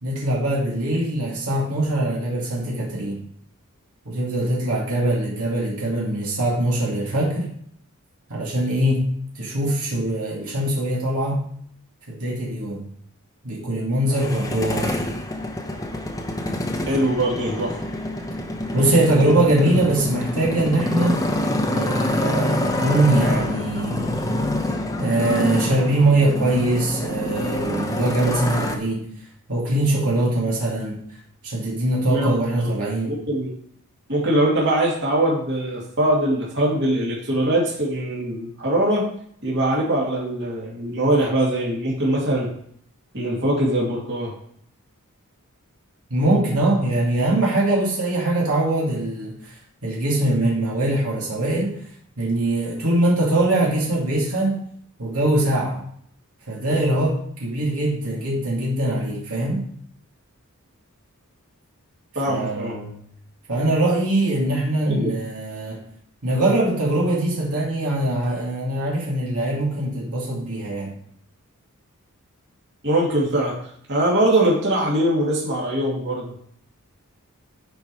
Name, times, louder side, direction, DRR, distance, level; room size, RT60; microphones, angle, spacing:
voice 1, 0.0-3.2 4.1-7.5 8.3-11.5 12.1-12.9 13.4-15.0 18.7-21.2 21.7-24.1 25.0-29.1 29.5-31.0 31.4-33.1 46.1-49.5 49.8-51.8 52.2-54.6 55.0-55.8 56.5-59.7 62.3-63.0 63.5-65.8 66.2-70.9, right 1 dB, 75° right, -4 dB, 2.5 m, -22 dB
Motorcycle, 14.1-28.8, left 1 dB, 15° left, 0.8 m, -26 dB
voice 2, 16.9-17.8 32.1-32.7 33.0-33.5 34.1-39.1 39.4-42.5 43.1-44.3 62.1-62.8 64.8-65.1 72.8-73.6 73.9-76.4, right 1 dB, 55° right, -5 dB, 2.5 m, -22 dB
10.0 x 4.7 x 4.7 m, 0.65 s
head